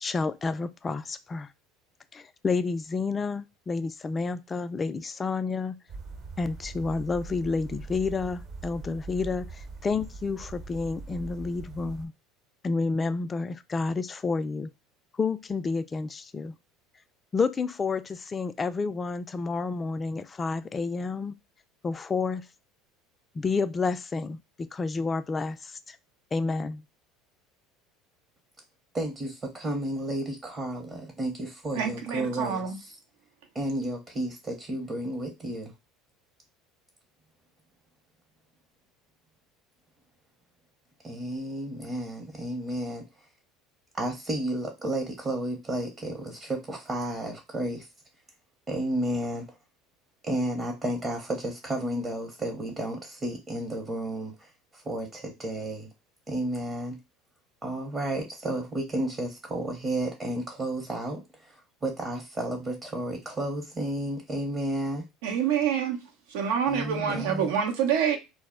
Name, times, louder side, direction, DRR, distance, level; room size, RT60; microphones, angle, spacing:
voice 1, 0.0-1.5 2.1-5.8 6.4-12.1 12.6-14.7 15.2-16.5 17.3-21.3 21.8-22.5 23.4-26.0 26.3-26.8, left 4 dB, 25° left, 0.3 m, -30 dB
sound 1, 5.9-12.1, right 4 dB, 50° right, 0.9 m, -42 dB
voice 2, 28.9-32.6 33.5-35.7 41.0-43.0 44.0-47.9 48.7-49.5 50.2-55.9 56.3-57.0 57.6-65.0 66.7-67.5, right 1 dB, 25° right, 0.7 m, -32 dB
voice 3, 31.7-32.8 65.2-66.0 66.3-68.2, right 8 dB, 80° right, 0.7 m, -27 dB
2.1 x 2.0 x 3.6 m
supercardioid pair, 100°, 0 cm